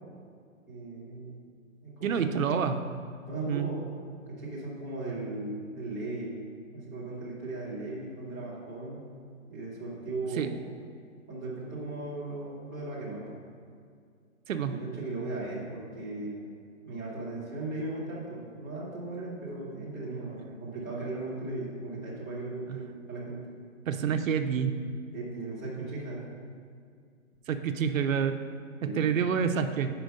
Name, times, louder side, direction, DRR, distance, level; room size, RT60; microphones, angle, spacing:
voice 1, 0.7-1.4 1.8-2.5 3.3-3.9 4.3-6.4 6.7-9.0 9.5-10.6 11.3-13.4 14.5-16.5 16.8-23.6 25.1-26.2 28.8-29.2, right 2 dB, 15° left, -12 dB, 0.6 m, -37 dB
voice 2, 2.0-2.8 3.5-3.7 10.4-10.5 14.5-14.7 22.7-22.8 23.9-24.7 27.5-28.4 28.9-29.9, right 7 dB, 70° right, 8 dB, 0.5 m, -27 dB
5.1 x 4.4 x 5.2 m, 2.2 s
hypercardioid pair, 175°, 41 cm